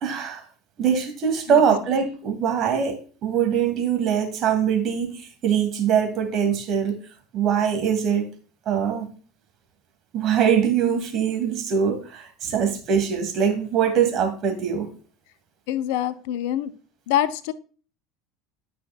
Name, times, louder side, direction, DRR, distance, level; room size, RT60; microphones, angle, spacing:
voice 1, 0.0-0.4 0.8-7.0 7.3-8.3 8.7-9.1 10.1-14.9, right 7 dB, 45° right, 2.0 m, -23 dB
voice 2, 15.7-16.7 17.1-17.5, left 11 dB, 65° left, 0.5 m, -25 dB
12.0 x 5.8 x 2.2 m
figure-of-eight pair, 70°, 0 cm